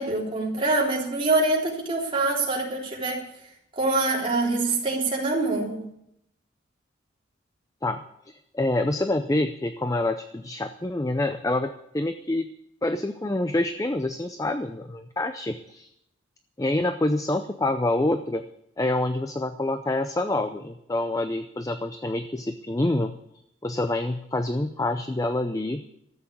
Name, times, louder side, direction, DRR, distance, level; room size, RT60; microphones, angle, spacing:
voice 1, 0.0-3.2 3.7-5.8, right 2 dB, 25° right, -3 dB, 3.5 m, -25 dB
voice 2, 7.8-12.5 12.8-15.9 16.6-18.4 18.8-23.2 23.6-25.8, left 2 dB, 15° left, 9 dB, 0.5 m, -27 dB
13.5 x 8.1 x 8.6 m, 0.77 s
head